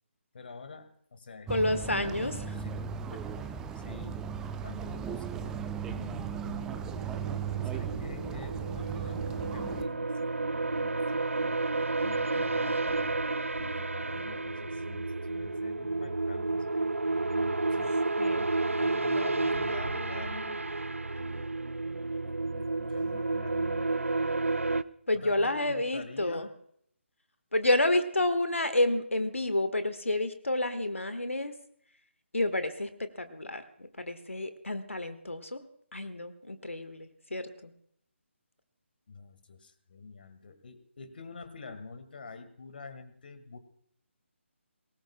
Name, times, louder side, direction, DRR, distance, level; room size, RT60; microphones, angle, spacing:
voice 1, 0.3-3.0 3.7-4.2 4.6-6.7 7.6-11.6 12.0-13.2 13.6-16.9 17.3-18.0 18.6-20.7 21.2-21.6 22.2-24.0 25.1-26.5 39.1-43.6, left 4 dB, 45° left, 11 dB, 1.8 m, -46 dB
voice 2, 1.5-2.4 18.2-18.5 25.1-26.5 27.5-31.5 32.3-35.6 35.9-37.7, left 1 dB, 75° left, 10 dB, 1.4 m, -29 dB
sound 1, 1.5-9.8, right 7 dB, 5° right, 0.5 m, -37 dB
sound 2, 6.4-24.8, right 3 dB, 80° right, 0.5 m, -31 dB
22.5 x 18.5 x 2.2 m, 0.67 s
figure-of-eight pair, 145°, 7 cm